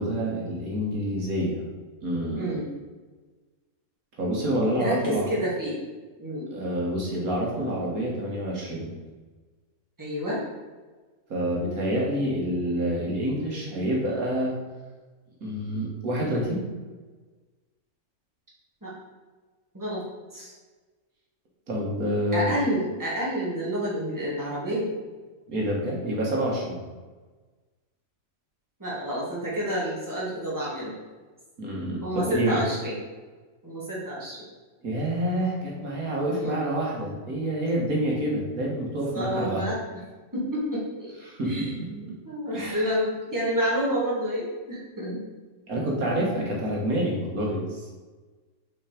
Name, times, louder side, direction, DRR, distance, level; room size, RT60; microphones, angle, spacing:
voice 1, 0.0-1.7 2.0-2.7 4.2-5.3 6.5-8.9 11.3-14.6 15.4-16.6 21.7-22.5 25.5-26.8 31.6-32.6 34.8-39.7 41.2-41.9 42.5-42.9 45.7-47.9, right 1 dB, 80° right, -3 dB, 2.0 m, -27 dB
voice 2, 2.4-2.7 4.8-5.8 6.2-6.5 10.0-10.4 18.8-18.9 19.7-20.0 20.3-20.5 22.3-24.9 28.8-31.0 32.0-33.0 33.6-34.4 36.4-36.7 39.1-39.8 40.3-41.1 41.4-45.2, equal, 15° right, -6 dB, 2.2 m, -29 dB
5.8 x 5.0 x 5.1 m, 1.3 s
omnidirectional pair, 1.5 m